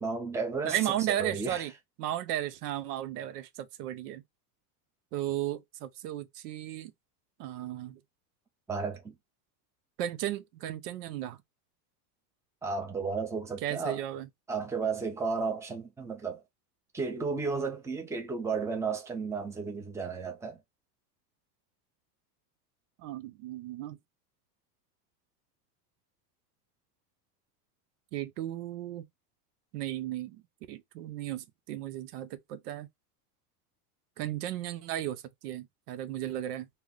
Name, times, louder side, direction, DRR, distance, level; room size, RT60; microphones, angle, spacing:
voice 1, 0.0-0.8 1.2-1.6 8.7-9.1 12.6-14.0 14.5-16.4 16.9-20.6, right 4 dB, 5° right, 0.6 m, -33 dB
voice 2, 0.6-1.7 2.0-4.2 5.1-6.9 7.4-8.0 10.0-11.4 13.6-14.3 23.0-24.0 28.1-29.1 29.7-30.4 30.7-32.9 34.2-36.7, right 12 dB, 75° right, 0.7 m, -35 dB
2.8 x 2.1 x 3.7 m
supercardioid pair, 120°, 47 cm